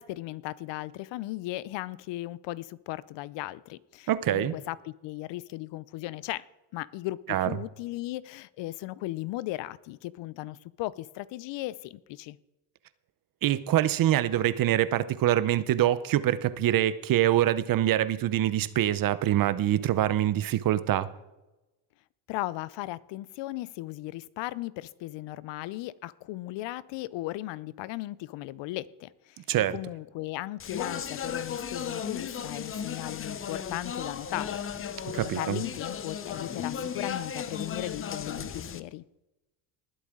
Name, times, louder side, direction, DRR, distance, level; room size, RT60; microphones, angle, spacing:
voice 1, 0.0-6.5 6.7-12.4 22.3-39.0, left 17 dB, 60° left, 0.6 m, -37 dB
voice 2, 4.1-4.5 7.3-7.5 13.4-21.1 29.5-29.8 35.1-35.6, right 12 dB, 45° right, 0.7 m, -25 dB
Speech, 30.6-38.8, left 7 dB, 25° left, 0.7 m, -35 dB
19.5 x 8.2 x 3.7 m
supercardioid pair, 105°, 49 cm